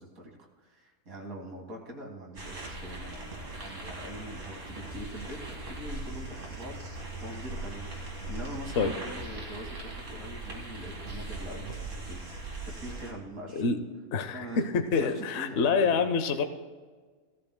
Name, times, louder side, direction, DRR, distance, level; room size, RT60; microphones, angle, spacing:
voice 1, 0.0-12.2 12.6-13.7 14.3-14.7 14.9-16.1, equal, 85° right, 1 dB, 2.2 m, -43 dB
sound 1, 2.4-13.1, right 2 dB, 65° right, 2.2 m, -40 dB
voice 2, 14.1-14.5 14.7-16.5, left 5 dB, 60° left, 8 dB, 0.9 m, -26 dB
16.5 x 13.5 x 2.2 m, 1.5 s
omnidirectional pair, 1.4 m